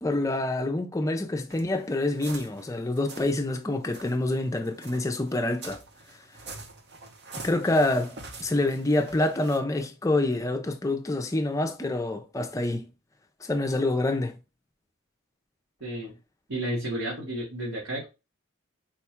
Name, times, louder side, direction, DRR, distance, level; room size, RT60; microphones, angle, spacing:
voice 1, 0.0-5.8 7.4-12.9 13.4-14.3, left 2 dB, 15° left, 0.5 m, -27 dB
sound 1, 1.5-3.4 3.8-9.6, right 3 dB, 55° right, 0.8 m, -45 dB
voice 2, 15.8-16.2 16.5-18.1, right 1 dB, 90° right, 1.4 m, -32 dB
4.2 x 2.3 x 4.3 m
head